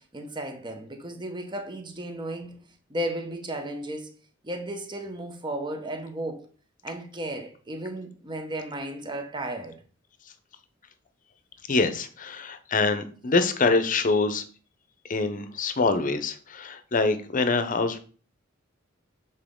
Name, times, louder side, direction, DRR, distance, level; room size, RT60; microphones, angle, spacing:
voice 1, 0.0-2.6 2.9-4.1 4.4-6.5 6.8-9.8, right 1 dB, 25° right, 0.9 m, -34 dB
voice 2, 11.7-14.4 15.1-18.0, left 3 dB, 45° left, 0.7 m, -25 dB
7.3 x 4.0 x 3.7 m
head